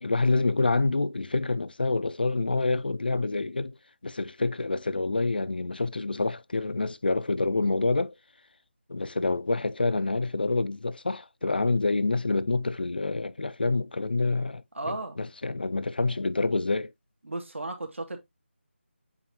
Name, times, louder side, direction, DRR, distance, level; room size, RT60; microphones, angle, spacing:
voice 1, 0.0-3.8 4.0-8.1 8.9-16.9, left 3 dB, 50° left, 0.4 m, -27 dB
voice 2, 14.7-15.2 17.2-18.2, right 2 dB, 80° right, 2.4 m, -34 dB
8.7 x 4.2 x 2.9 m
figure-of-eight pair, 180°, 7 cm